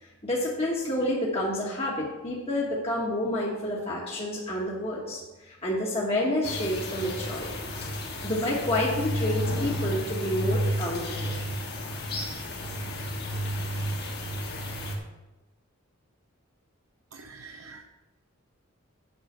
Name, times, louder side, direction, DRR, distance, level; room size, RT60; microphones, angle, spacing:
voice 1, 0.2-7.5 8.2-11.4, left 1 dB, 30° left, -5 dB, 1.3 m, -29 dB
sound 1, 6.4-14.9, equal, 50° left, 1.6 m, -32 dB
voice 2, 17.1-17.8, right 4 dB, 90° right, 4 dB, 0.7 m, -45 dB
8.0 x 5.5 x 6.7 m, 1.1 s
head